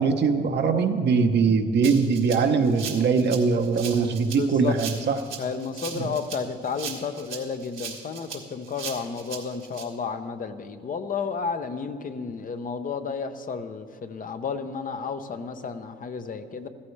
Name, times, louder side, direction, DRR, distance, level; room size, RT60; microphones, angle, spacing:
voice 1, 0.0-5.2 5.9-6.1, right 5 dB, 60° right, 6 dB, 1.0 m, -22 dB
Rattle (instrument), 1.8-9.8, right 7 dB, 80° right, 1.8 m, -38 dB
voice 2, 4.1-4.8 5.4-16.7, left 5 dB, 45° left, 8 dB, 0.8 m, -32 dB
14.5 x 14.0 x 3.3 m, 2.1 s
cardioid pair, 90°, 20 cm